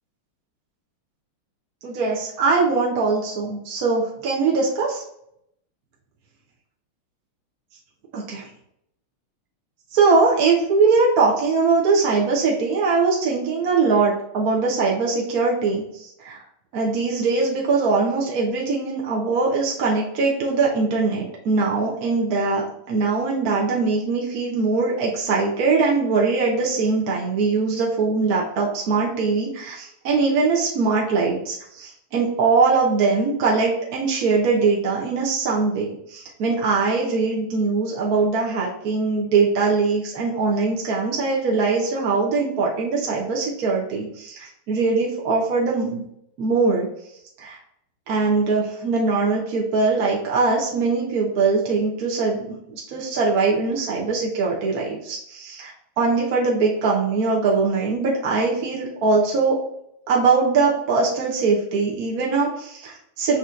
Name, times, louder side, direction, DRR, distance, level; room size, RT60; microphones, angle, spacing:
voice 1, 1.8-5.0 8.1-8.5 9.9-16.4 16.7-46.0 46.4-46.9 47.4-47.6 48.1-59.6 60.1-63.4, right 4 dB, 55° right, -3 dB, 1.2 m, -21 dB
6.9 x 3.0 x 2.5 m, 0.75 s
omnidirectional pair, 2.4 m